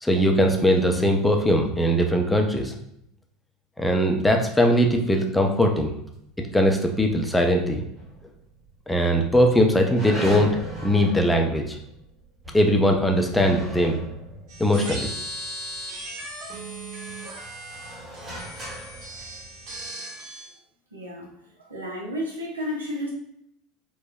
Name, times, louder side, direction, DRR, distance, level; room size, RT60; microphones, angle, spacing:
voice 1, 0.0-2.7 3.8-5.9 6.5-7.8 8.9-10.5 10.8-11.8 12.5-14.0 14.6-15.1, equal, 5° left, 2 dB, 0.4 m, -20 dB
sound 1, 8.0-8.7 9.1-9.2 9.8-16.0 16.5-19.9, right 1 dB, 35° right, 1.3 m, -39 dB
sound 2, 14.5-20.5, right 1 dB, 60° right, 0.9 m, -37 dB
voice 2, 19.7-20.1 20.9-21.3 21.6-23.1, left 1 dB, 85° right, -2 dB, 0.6 m, -33 dB
3.3 x 2.2 x 2.2 m, 0.75 s
figure-of-eight pair, 75°, 0 cm